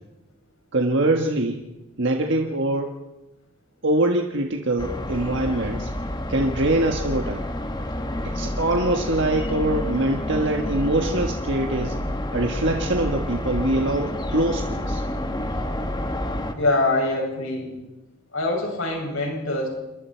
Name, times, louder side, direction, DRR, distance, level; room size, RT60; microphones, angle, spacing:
voice 1, 0.7-1.6 2.0-2.9 3.8-5.9 6.3-7.4 8.2-12.0 12.3-15.0, right 1 dB, 55° right, 2 dB, 1.6 m, -23 dB
sound 1, 4.8-16.5, left 1 dB, 20° left, 1.5 m, -29 dB
voice 2, 16.5-17.7 18.3-19.7, left 2 dB, 70° left, 0 dB, 7.7 m, -24 dB
28.5 x 23.0 x 4.6 m, 0.99 s
head